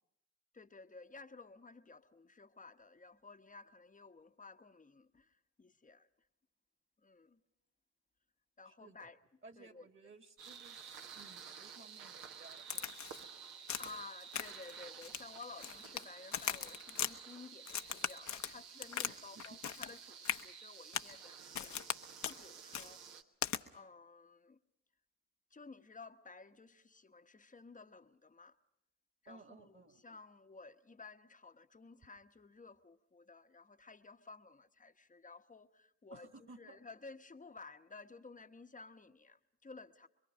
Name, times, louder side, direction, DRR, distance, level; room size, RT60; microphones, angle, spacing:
voice 1, 0.5-6.1 7.0-7.4 8.6-9.2 9.6-9.9 13.8-23.0 23.7-24.6 25.5-28.6 29.2-40.1, left 4 dB, 20° left, 1.1 m, -54 dB
voice 2, 8.7-9.1 9.4-13.2 19.0-19.4 29.3-30.0 36.1-36.8, right 3 dB, 30° right, 2.1 m, -58 dB
sound 1, 10.4-23.2, right 7 dB, 65° right, 1.5 m, -52 dB
Crack, 12.7-13.2 13.7-14.0 14.3-14.7 15.0-16.0 16.3-17.1 17.7-19.1 19.4-20.0 20.2-20.4 20.9-21.1 21.5-22.0 22.2-22.4 22.7-22.9 23.4-23.6, left 9 dB, 45° left, 0.9 m, -39 dB
26.0 x 22.5 x 5.2 m
hypercardioid pair, 55°, 39 cm